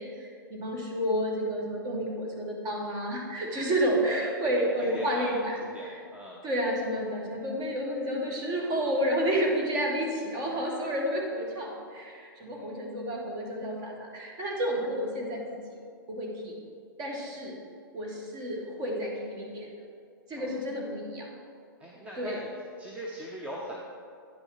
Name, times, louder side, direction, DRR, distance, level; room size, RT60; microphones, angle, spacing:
voice 1, 0.0-5.9 6.4-15.4 16.1-16.5 17.0-17.5 17.9-19.7 20.3-21.4 22.2-22.5, equal, 30° right, -1 dB, 1.8 m, -30 dB
voice 2, 4.8-5.3 5.6-6.4 12.4-12.7 20.3-20.5 21.8-22.5 22.8-23.8, equal, 10° right, -3 dB, 0.8 m, -41 dB
9.6 x 6.0 x 4.0 m, 2.3 s
hypercardioid pair, 125°, 12 cm